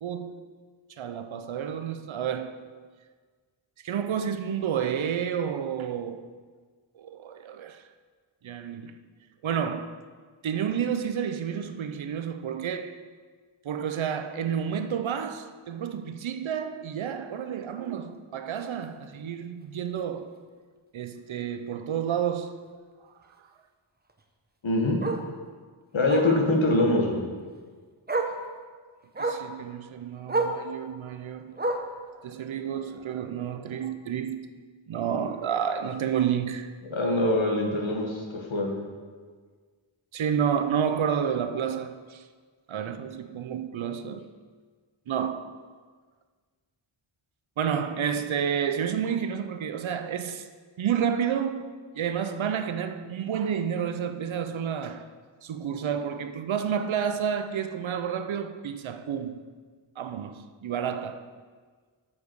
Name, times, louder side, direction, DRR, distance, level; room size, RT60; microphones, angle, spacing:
voice 1, 0.0-0.5 1.0-2.7 3.8-6.3 6.9-7.9 8.4-8.9 9.4-10.0 10.4-13.0 13.6-20.4 20.9-22.7 29.2-31.6 32.1-34.5 34.9-36.7 40.1-42.3 42.7-44.3 45.1-45.5 47.6-50.5 50.8-55.1 55.4-59.4 60.0-61.3, right 8 dB, 70° right, 0.7 m, -30 dB
Bark, 18.6-18.7 19.1-19.2 19.6-19.7 20.0-20.1 21.5-21.6 24.1-24.2 25.0-25.3 26.1-26.4 27.6-27.7 28.1-28.4 29.1-29.5 30.3-30.6 31.6-32.0 33.0-33.1, right 3 dB, 20° right, 0.8 m, -29 dB
voice 2, 24.6-25.0 25.9-27.2 36.9-38.2 38.5-38.8, left 2 dB, 70° left, 1.6 m, -23 dB
7.3 x 6.8 x 4.7 m
cardioid pair, 45°, 48 cm